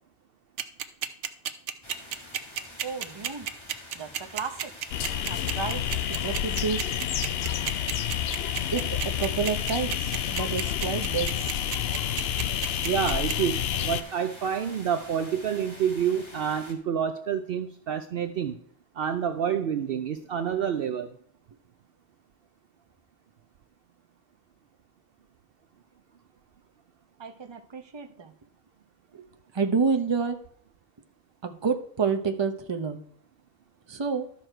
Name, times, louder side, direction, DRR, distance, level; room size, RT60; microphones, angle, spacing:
sound 1, 0.6-13.3, right 9 dB, 80° right, 1.0 m, -31 dB
sound 2, 1.8-16.7, left 1 dB, 25° left, 1.5 m, -47 dB
voice 1, 2.8-3.5 3.9-4.5 5.3-5.8 6.1-6.8 8.7-11.4 27.2-28.3 29.1-29.3 29.5-30.4 31.4-33.0 33.9-34.2, right 5 dB, 25° right, 5 dB, 0.8 m, -29 dB
sound 3, 4.9-14.0, left 10 dB, 65° left, 0.8 m, -29 dB
voice 2, 12.8-18.6 19.0-21.1, right 8 dB, 60° right, 8 dB, 0.7 m, -28 dB
12.5 x 6.4 x 4.4 m, 0.65 s
omnidirectional pair, 1.2 m